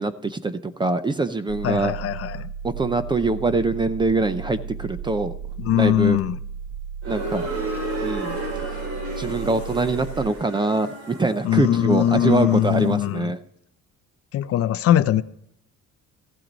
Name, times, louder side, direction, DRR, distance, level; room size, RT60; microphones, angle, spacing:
voice 1, 0.0-1.9 2.6-5.3 5.7-6.2 7.1-7.5 8.0-8.4 9.2-13.4, right 3 dB, 15° right, 0.5 m, -24 dB
sound 1, 1.5-10.3, right 7 dB, 85° right, 1.2 m, -35 dB
voice 2, 1.6-2.5 5.6-6.4 11.4-13.3 14.3-15.2, left 11 dB, 50° left, 0.5 m, -21 dB
sound 2, 7.0-12.9, right 1 dB, 55° right, 5.6 m, -33 dB
15.0 x 9.1 x 4.0 m
cardioid pair, 155°, 31 cm